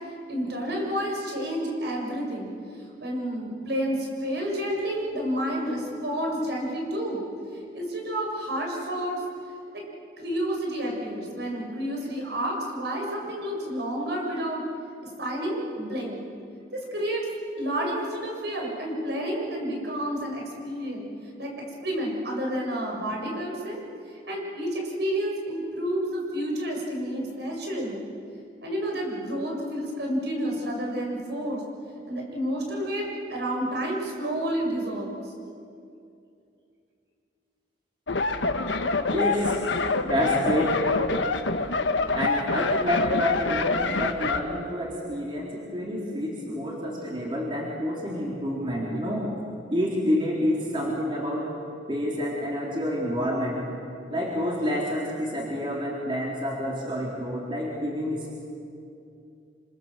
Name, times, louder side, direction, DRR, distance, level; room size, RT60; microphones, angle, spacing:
voice 1, 0.3-2.5 3.0-7.2 7.7-9.2 9.7-9.8 10.2-14.6 15.2-16.2 16.7-17.3 17.6-21.1 21.4-23.8 24.1-28.0 28.6-31.6 32.1-35.3, equal, 65° right, -1 dB, 7.0 m, -30 dB
sound 1, 38.1-44.4, left 3 dB, 90° left, 1.4 m, -26 dB
voice 2, 39.1-39.6 40.0-40.8 42.1-49.3 49.7-51.5 51.9-53.6 54.1-58.3, equal, 25° right, -3 dB, 3.9 m, -28 dB
27.0 x 26.5 x 7.6 m, 2.6 s
head